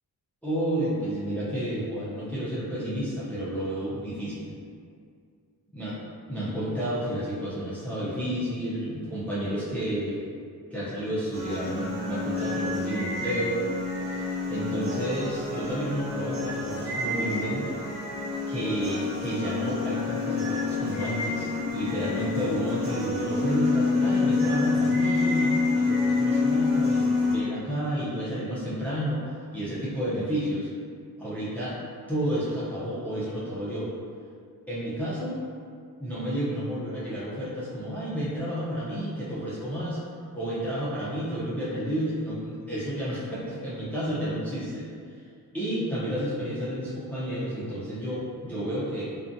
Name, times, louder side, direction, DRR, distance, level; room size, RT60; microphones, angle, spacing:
voice 1, 0.4-4.5 5.7-5.9 6.3-10.2 10.7-13.6 14.0-17.7 18.5-30.7 31.2-31.8 32.1-33.9 34.7-35.4 36.0-40.0 40.3-44.9 45.2-45.3 45.5-49.1, equal, 5° left, -10 dB, 0.5 m, -31 dB
sound 1, 11.3-27.3, left 3 dB, 35° right, 1.3 m, -27 dB
2.4 x 2.4 x 2.5 m, 2.2 s
cardioid pair, 100°, 39 cm